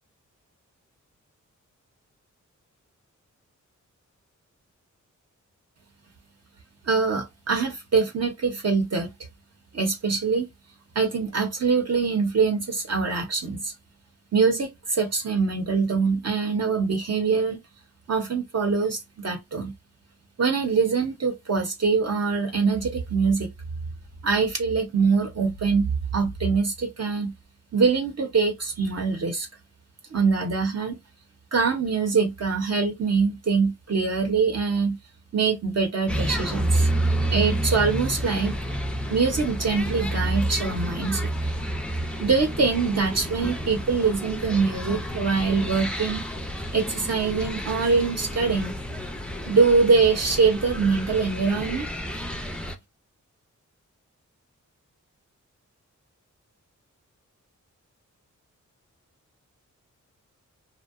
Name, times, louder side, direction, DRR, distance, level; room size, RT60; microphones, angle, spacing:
voice 1, 6.9-9.1 9.7-10.5 10.9-13.7 14.3-17.6 18.1-19.7 20.4-23.5 24.2-27.3 27.7-29.5 30.1-31.0 31.5-35.0 35.3-36.9 37.3-38.5 39.1-41.3 42.2-46.2 46.7-48.7 49.5-51.9, right 4 dB, 55° right, 0.7 m, -23 dB
sound 1, 36.1-52.8, right 1 dB, 5° left, 0.4 m, -29 dB
2.6 x 2.0 x 2.4 m
wide cardioid pair, 145°, 31 cm